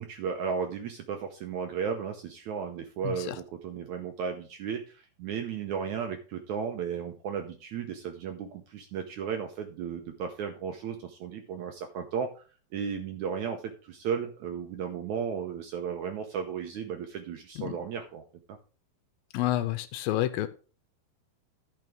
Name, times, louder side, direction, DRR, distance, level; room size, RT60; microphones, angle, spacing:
voice 1, 0.0-12.4 12.7-18.2, right 7 dB, 75° right, 5 dB, 1.8 m, -34 dB
voice 2, 3.0-3.4 17.6-17.8 19.3-20.5, left 14 dB, 80° left, 11 dB, 2.4 m, -29 dB
14.0 x 5.9 x 3.6 m, 0.37 s
omnidirectional pair, 4.3 m